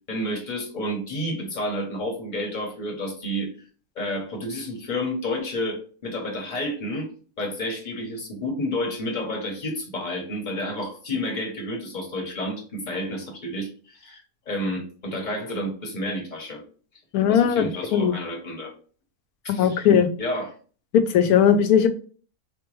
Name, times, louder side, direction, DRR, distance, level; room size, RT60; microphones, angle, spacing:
voice 1, 0.1-3.5 4.0-7.1 7.4-16.6 17.3-18.7 19.4-19.8 20.2-20.5, left 1 dB, 35° left, 1 dB, 1.0 m, -30 dB
voice 2, 17.1-18.1 19.5-20.1 20.9-21.9, left 8 dB, 85° left, 9 dB, 1.1 m, -18 dB
4.3 x 2.2 x 3.0 m, 0.41 s
omnidirectional pair, 1.6 m